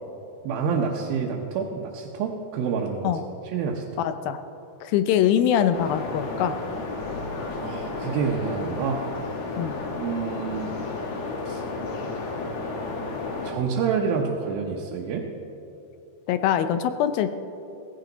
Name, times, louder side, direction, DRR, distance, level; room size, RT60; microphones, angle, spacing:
voice 1, 0.4-3.1 3.5-4.0 7.6-9.0 10.0-10.8 11.5-11.6 13.4-15.3, right 6 dB, 80° right, -1 dB, 2.7 m, -28 dB
voice 2, 4.0-4.4 4.8-6.6 9.6-9.7 16.3-17.3, left 9 dB, 80° left, 10 dB, 2.4 m, -23 dB
sound 1, 5.7-13.5, left 3 dB, 55° left, 2.4 m, -32 dB
17.0 x 15.0 x 4.0 m, 2.8 s
omnidirectional pair, 4.3 m